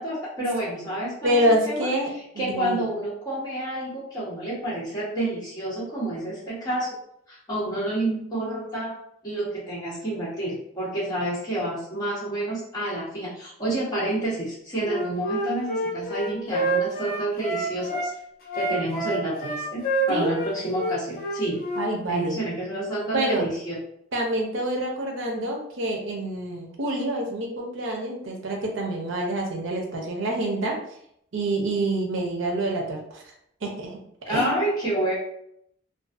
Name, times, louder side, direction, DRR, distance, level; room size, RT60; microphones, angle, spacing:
voice 1, 0.0-1.9 2.4-7.0 7.3-9.0 9.2-18.1 18.5-21.6 22.1-23.8 34.2-35.1, right 1 dB, 20° left, -9 dB, 1.1 m, -29 dB
voice 2, 1.2-2.1 2.3-2.8 20.1-20.3 21.8-22.4 23.1-23.5 24.1-30.8 31.3-33.2 33.6-34.0 34.3-34.6, right 1 dB, 80° right, 1 dB, 0.6 m, -27 dB
Wind instrument woodwind instrument, 14.8-18.1 18.5-21.9, right 1 dB, 50° left, 0.6 m, -28 dB
2.5 x 2.2 x 2.4 m, 0.72 s
head